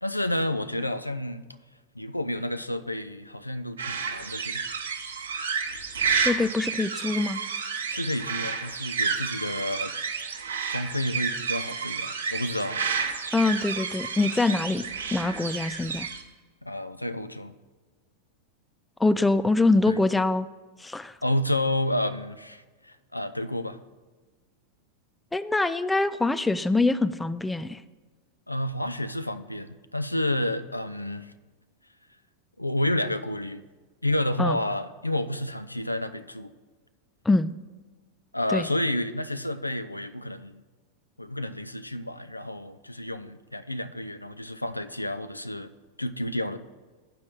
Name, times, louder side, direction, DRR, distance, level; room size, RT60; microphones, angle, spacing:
voice 1, 0.0-1.4 2.0-4.6 7.9-9.9 10.7-12.8 14.7-14.9 16.6-17.5 19.9-20.0 21.2-23.8 28.5-31.3 32.6-33.6 34.0-36.5 38.3-40.6 41.2-45.7 46.0-46.6, left 1 dB, 85° left, 11 dB, 0.4 m, -30 dB
sound 1, 3.8-16.2, right 5 dB, 70° right, 0.8 m, -30 dB
voice 2, 6.1-7.4 13.3-14.9 15.1-16.1 19.0-20.5 20.8-21.1 25.3-27.8 34.4-34.6 37.3-37.5 38.5-38.7, left 2 dB, 10° left, 14 dB, 0.3 m, -24 dB
7.6 x 5.2 x 7.2 m, 1.3 s
figure-of-eight pair, 90°, 0 cm